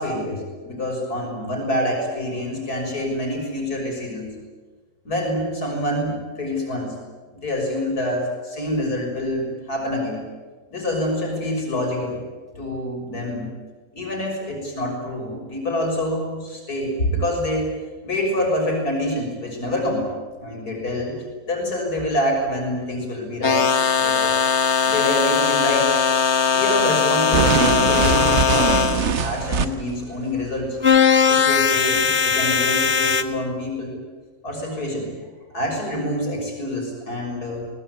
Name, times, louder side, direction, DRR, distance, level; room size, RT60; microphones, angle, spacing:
voice 1, 0.0-4.3 5.1-6.9 7.3-10.2 10.7-12.2 12.6-13.5 13.9-17.7 18.0-20.0 20.4-21.2 21.5-23.7 24.0-24.4 24.9-26.0 26.5-28.8 29.2-30.8 31.3-34.0 34.4-35.1 35.5-37.6, left 1 dB, 85° left, 0 dB, 7.0 m, -26 dB
sound 1, 23.4-29.1 30.8-33.2, left 6 dB, 50° left, 1.4 m, -19 dB
sound 2, 27.3-30.0, right 6 dB, 50° right, 1.4 m, -22 dB
23.0 x 20.0 x 9.8 m, 1.4 s
omnidirectional pair, 1.6 m